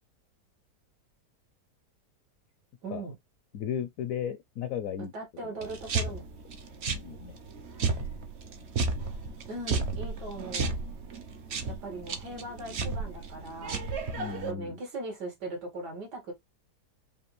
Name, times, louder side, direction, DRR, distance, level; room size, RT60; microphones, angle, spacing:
voice 1, 2.8-3.2 5.0-6.3 9.5-10.8 11.7-13.8 14.4-16.3, right 2 dB, 80° right, 2.3 m, -39 dB
voice 2, 3.5-5.1 5.4-5.7 6.9-7.4 14.1-14.8, left 8 dB, 70° left, 0.9 m, -35 dB
sound 1, 5.6-14.5, right 4 dB, 55° right, 0.8 m, -33 dB
5.1 x 2.6 x 3.1 m
omnidirectional pair, 1.8 m